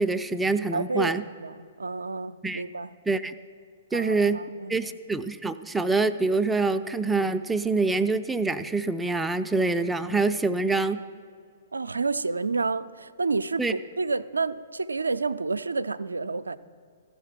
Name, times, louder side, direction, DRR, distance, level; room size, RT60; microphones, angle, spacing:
voice 1, 0.0-1.2 2.4-2.6 3.1-3.3 3.9-4.4 4.7-11.0 13.6-13.7, right 3 dB, 5° right, 0.3 m, -25 dB
voice 2, 0.7-2.9 3.9-4.9 11.7-16.6, right 4 dB, 85° right, 0.3 m, -30 dB
14.5 x 5.6 x 5.9 m
figure-of-eight pair, 120°, 0 cm